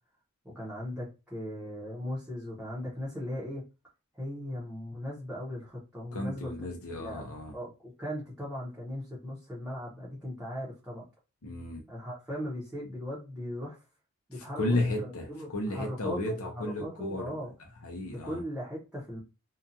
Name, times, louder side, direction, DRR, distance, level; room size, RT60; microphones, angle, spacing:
voice 1, 0.4-3.6 4.2-6.5 7.0-7.2 7.5-11.0 11.9-13.8 14.3-17.5 18.2-19.2, equal, 5° right, 0.8 m, -38 dB
voice 2, 6.1-7.5 11.4-11.8 14.4-17.3 17.8-18.4, left 1 dB, 75° left, 0.6 m, -33 dB
2.8 x 2.3 x 2.5 m
head